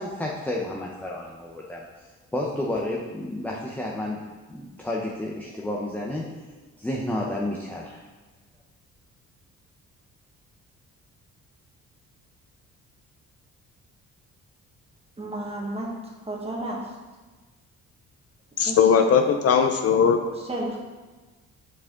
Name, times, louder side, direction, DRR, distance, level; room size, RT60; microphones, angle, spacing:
voice 1, 0.0-1.8 2.3-4.2 4.5-6.4 6.8-8.0, left 1 dB, 5° left, -3 dB, 0.7 m, -31 dB
voice 2, 15.2-15.9 16.3-16.8 18.6-19.0 19.6-19.7 20.5-20.8, right 1 dB, 20° right, -2 dB, 1.6 m, -32 dB
voice 3, 18.6-20.2, left 6 dB, 50° left, 6 dB, 0.6 m, -19 dB
6.4 x 4.9 x 3.7 m, 1.3 s
cardioid pair, 90°, 30 cm